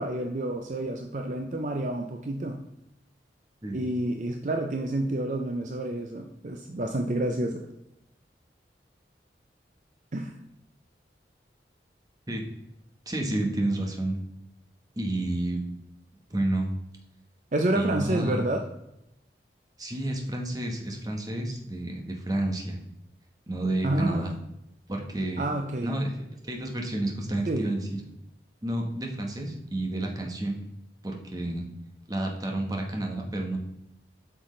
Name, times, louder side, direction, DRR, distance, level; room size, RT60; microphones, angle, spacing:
voice 1, 0.0-2.6 3.7-7.6 10.1-10.4 17.5-18.6 23.8-24.2 25.4-25.9 27.5-27.7, right 1 dB, 45° right, 4 dB, 0.5 m, -29 dB
voice 2, 13.1-14.2 14.9-15.6 16.3-16.7 17.7-18.4 19.8-22.8 23.5-24.3 24.9-25.5 25.8-26.1 26.4-28.0 28.6-30.6 31.0-31.7 32.1-33.6, right 1 dB, 20° right, 1 dB, 1.1 m, -30 dB
7.9 x 6.0 x 3.2 m, 0.85 s
head